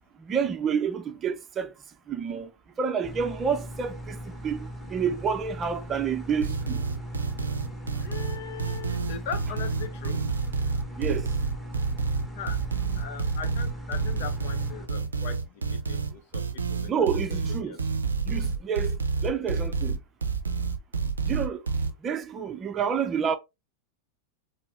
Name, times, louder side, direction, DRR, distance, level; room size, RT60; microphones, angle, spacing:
voice 1, 0.2-1.7 2.1-2.5 2.8-6.8 11.0-11.3 16.9-17.8 18.2-20.0 21.2-21.6 22.0-23.4, right 7 dB, 25° right, 0.6 m, -29 dB
sound 1, 3.0-14.8, right 1 dB, 5° left, 1.5 m, -39 dB
sound 2, 6.4-21.9, right 4 dB, 75° right, 0.5 m, -28 dB
voice 2, 8.0-10.2 12.3-12.7 12.9-17.2 17.6-17.8, left 7 dB, 50° left, 0.8 m, -39 dB
4.8 x 2.0 x 3.4 m
figure-of-eight pair, 90°, 0 cm